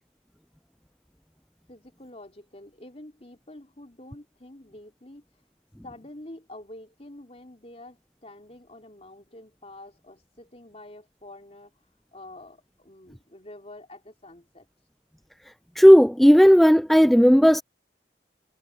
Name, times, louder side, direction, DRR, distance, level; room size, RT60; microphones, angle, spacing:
voice 1, 1.7-5.2 5.8-11.7 12.1-14.7, left 1 dB, 35° left, 3.9 m, -47 dB
voice 2, 15.8-17.6, equal, ahead, 0.3 m, -14 dB
head